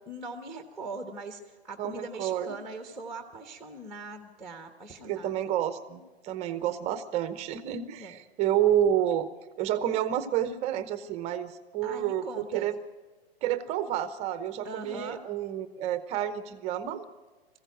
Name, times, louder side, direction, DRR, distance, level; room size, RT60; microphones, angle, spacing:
voice 1, 0.1-5.4 8.0-8.2 11.8-12.7 14.6-15.2, right 3 dB, ahead, 5 dB, 1.2 m, -41 dB
voice 2, 1.8-2.5 5.0-9.3 9.6-12.8 13.4-17.0, right 10 dB, 20° right, 13 dB, 0.8 m, -29 dB
20.5 x 15.5 x 9.3 m, 1.3 s
hypercardioid pair, 135°, 32 cm